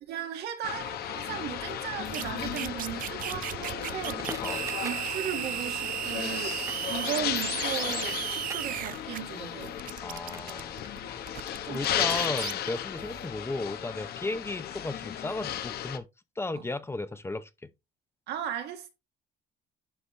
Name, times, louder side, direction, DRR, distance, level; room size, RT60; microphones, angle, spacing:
voice 1, 0.0-4.3 4.8-9.8 11.6-12.0 16.5-16.6 18.3-18.9, right 10 dB, 80° right, 2.0 m, -37 dB
sound 1, 0.6-16.0, left 10 dB, 65° left, 1.1 m, -35 dB
sound 2, 2.0-9.2 9.6-12.5 13.0-13.3, right 13 dB, 55° right, 0.5 m, -35 dB
Crackle, 3.8-10.5 10.8-13.2, right 3 dB, 20° right, 1.1 m, -46 dB
voice 2, 10.0-10.8 11.7-16.0 16.4-17.7, left 2 dB, 15° left, 0.7 m, -35 dB
11.5 x 4.1 x 3.2 m
cardioid pair, 110°, 17 cm